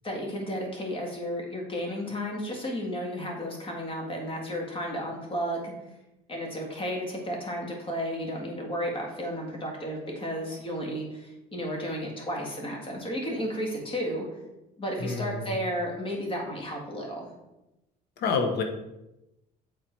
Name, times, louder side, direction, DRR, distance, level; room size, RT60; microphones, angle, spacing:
voice 1, 0.0-5.7 6.3-14.3 14.8-17.3, equal, 30° left, 0 dB, 1.9 m, -33 dB
voice 2, 15.0-15.6 18.2-18.6, left 4 dB, 75° left, 5 dB, 1.1 m, -28 dB
7.5 x 3.9 x 4.5 m, 0.93 s
cardioid pair, 110°, 17 cm